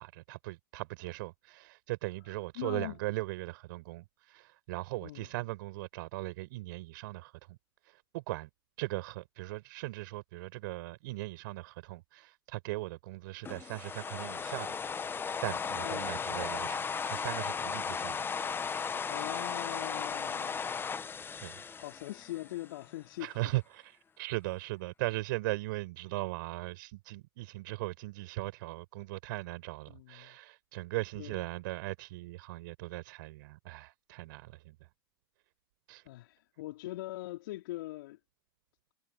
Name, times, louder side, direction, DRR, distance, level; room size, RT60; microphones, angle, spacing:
voice 1, 0.0-7.6 7.8-8.5 8.8-15.2 15.4-18.3 21.4-21.6 23.2-34.9 35.9-36.1, right 20 dB, 55° right, 5.2 m, -39 dB
voice 2, 2.6-3.0 5.0-5.3 15.8-16.2 19.1-20.9 21.8-23.3 29.9-30.4 31.2-31.4 36.1-38.2, left 17 dB, 60° left, 4.1 m, -42 dB
sound 1, 13.4-22.7, left 6 dB, 15° left, 1.1 m, -36 dB
hypercardioid pair, 95°, 13 cm